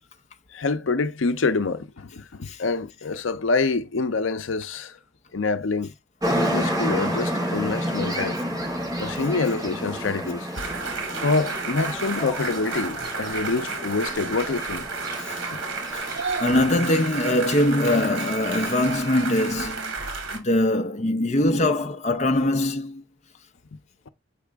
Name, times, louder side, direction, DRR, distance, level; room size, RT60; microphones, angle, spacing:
voice 1, 0.5-4.9 5.3-5.9 6.3-8.4 9.0-10.5 11.2-14.8 15.5-15.6, left 3 dB, 80° left, 0.6 m, -26 dB
sound 1, 6.2-16.2, equal, 15° right, 2.3 m, -30 dB
sound 2, 10.5-20.4, right 4 dB, 85° right, 2.2 m, -31 dB
voice 2, 16.4-19.9 20.3-23.0, left 1 dB, 35° left, 0.6 m, -22 dB
7.5 x 4.9 x 3.4 m
head